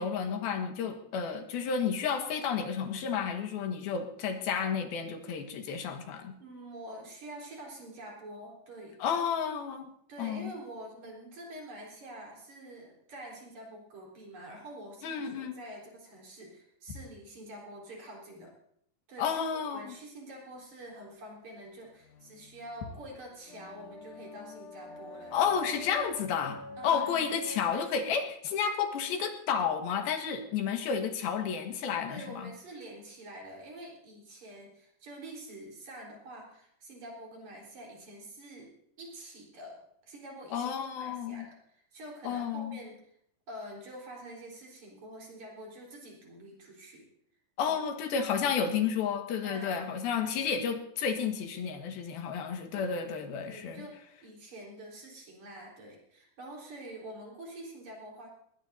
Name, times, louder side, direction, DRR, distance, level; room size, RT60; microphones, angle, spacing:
voice 1, 0.0-6.3 9.0-9.9 10.2-10.5 15.0-15.6 19.2-20.0 25.3-32.5 40.5-41.5 42.2-42.8 47.6-53.9, left 7 dB, 90° left, 5 dB, 3.4 m, -31 dB
voice 2, 6.4-9.0 10.1-18.5 19.1-19.4 19.7-25.4 26.8-27.4 32.1-38.7 39.0-40.7 41.0-43.0 43.5-47.1 47.7-47.8 49.4-49.9 50.2-50.5 53.4-58.3, right 1 dB, 50° right, -2 dB, 5.3 m, -46 dB
sound 1, 21.9-27.7, left 3 dB, 70° left, 1.7 m, -46 dB
20.0 x 19.0 x 2.7 m, 0.71 s
omnidirectional pair, 4.2 m